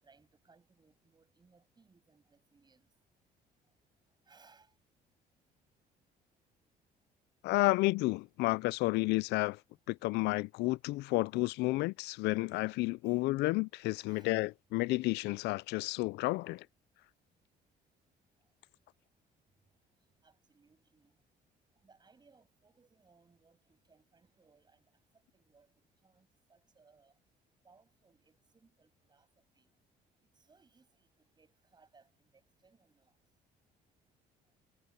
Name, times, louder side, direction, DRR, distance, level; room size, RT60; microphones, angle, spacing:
voice 1, 0.0-2.9 4.3-4.7 13.0-13.2 14.1-14.4 20.2-21.2 21.8-24.9 25.3-25.7 26.0-27.1 27.6-29.3 29.5-29.7 30.3-33.1, right 4 dB, 25° right, 7.8 m, -66 dB
voice 2, 7.4-9.6 9.9-16.6, left 21 dB, 85° left, 0.4 m, -31 dB
cardioid pair, 110°, 17 cm